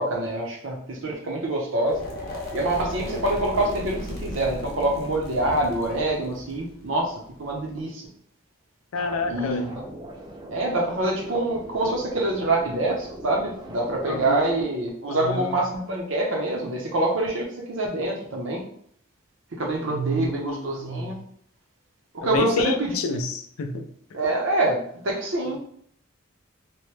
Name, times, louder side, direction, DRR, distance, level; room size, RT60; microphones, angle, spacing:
voice 1, 0.0-2.0 2.5-7.1 7.4-8.1 9.3-9.8 10.5-18.6 19.5-21.2 22.1-22.9 24.1-25.6, right 2 dB, 65° right, 0.7 m, -26 dB
sound 1, 1.8-7.8, left 1 dB, 45° left, 0.7 m, -36 dB
voice 2, 8.9-9.6 14.1-14.4 15.1-15.5 19.9-21.2 22.2-23.9, left 2 dB, 85° left, 0.4 m, -28 dB
sound 2, 8.9-14.6, right 1 dB, 20° right, 0.3 m, -40 dB
3.0 x 2.1 x 3.1 m
head